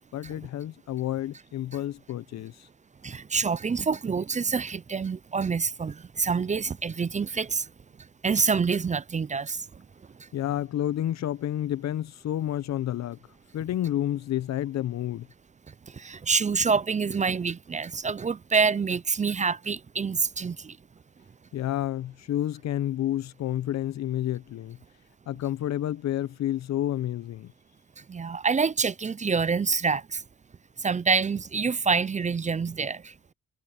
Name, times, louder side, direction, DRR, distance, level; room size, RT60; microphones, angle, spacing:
voice 1, 0.1-2.5 10.3-13.2 13.5-15.3 21.5-24.8 25.3-27.5, left 12 dB, 65° left, 0.7 m, -30 dB
voice 2, 3.0-7.7 8.0-10.3 15.7-20.8 28.0-30.2 30.8-33.3, right 5 dB, 25° right, 0.5 m, -27 dB
cardioid pair, 90°, 30 cm